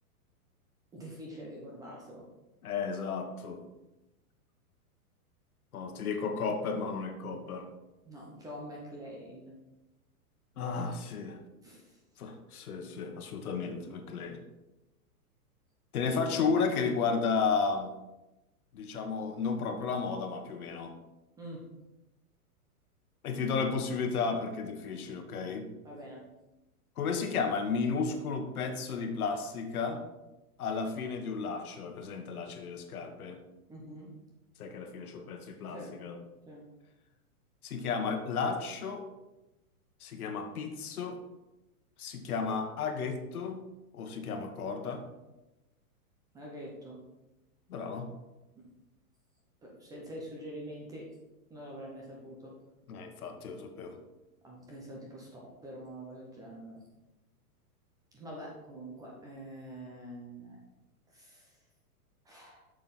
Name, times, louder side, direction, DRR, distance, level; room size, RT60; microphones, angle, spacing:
voice 1, 0.9-2.2 8.0-9.5 11.6-12.0 21.4-21.6 25.8-26.2 33.7-34.1 35.7-35.9 36.5-36.6 46.3-47.0 49.6-51.1 51.5-52.5 54.4-56.8 58.1-60.7 61.1-61.6 62.2-62.6, equal, 10° right, -2 dB, 0.8 m, -45 dB
voice 2, 2.6-3.6 5.7-7.7 10.6-11.4 12.2-14.4 15.9-17.9 18.7-20.9 23.2-25.7 27.0-30.0 30.6-33.4 34.6-36.2 37.6-39.0 40.0-41.2 42.0-43.6 43.9-45.0 47.7-48.1 52.9-54.0, left 5 dB, 70° left, 5 dB, 1.4 m, -33 dB
7.7 x 6.7 x 4.2 m, 1.0 s
hypercardioid pair, 160°, 45 cm